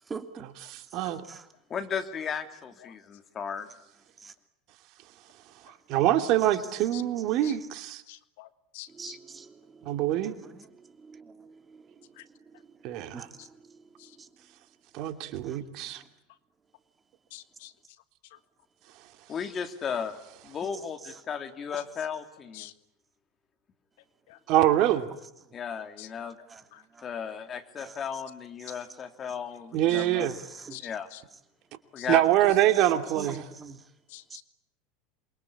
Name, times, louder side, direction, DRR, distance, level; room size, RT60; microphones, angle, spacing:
voice 1, 0.1-0.5 1.2-1.5 4.2-4.3 6.4-6.5 8.9-9.8 10.2-10.7 11.0-11.8 13.1-13.5 14.2-14.3 15.4-15.6 26.5-26.6 26.9-27.0 27.8-27.9 28.6-28.8 30.4-30.8 33.2-33.8, right 5 dB, 25° right, 3.0 m, -44 dB
voice 2, 0.7-1.2 5.9-8.0 9.9-10.3 12.8-13.3 14.9-16.0 24.5-25.1 29.7-30.4 32.1-33.5, right 13 dB, 55° right, 2.8 m, -24 dB
voice 3, 1.7-3.7 19.3-20.2 20.4-22.7 25.5-26.4 27.0-30.3 30.8-31.1 31.9-32.2, left 7 dB, 35° left, 3.5 m, -35 dB
voice 4, 8.1-8.5 8.7-9.2 17.3-17.7 22.6-22.7 26.0-26.1 30.7-30.9 32.0-32.1 34.1-34.4, left 16 dB, 70° left, 1.5 m, -45 dB
27.5 x 23.5 x 8.7 m
hypercardioid pair, 90°, 0 cm